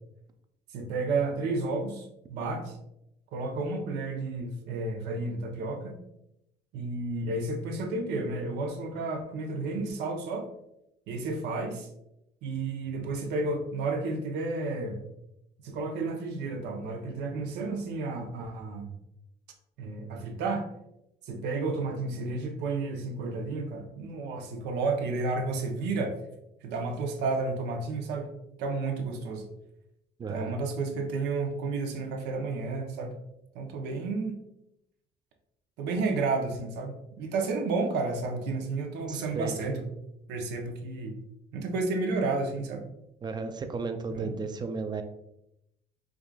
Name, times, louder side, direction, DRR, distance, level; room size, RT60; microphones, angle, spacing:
voice 1, 0.7-2.8 3.3-6.0 6.7-10.5 11.1-11.9 12.4-15.0 15.6-18.9 19.8-20.7 21.2-26.2 26.6-28.3 28.6-29.5 30.3-33.2 33.5-34.4 35.8-39.8 40.3-41.2 41.5-42.8 44.1-44.3, right 3 dB, 85° right, 3 dB, 0.7 m, -31 dB
voice 2, 30.2-30.6 39.1-39.6 43.2-45.0, right 4 dB, 25° right, 7 dB, 0.4 m, -34 dB
4.7 x 2.4 x 2.2 m, 0.83 s
cardioid pair, 110°, 17 cm